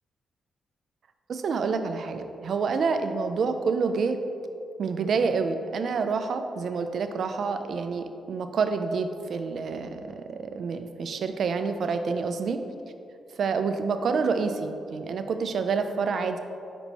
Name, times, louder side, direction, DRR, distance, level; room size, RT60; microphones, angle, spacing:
voice 1, 1.3-4.2 4.8-12.6 13.4-16.4, right 5 dB, 65° right, 8 dB, 0.4 m, -28 dB
5.3 x 4.4 x 4.0 m, 2.6 s
cardioid pair, 65°, 0 cm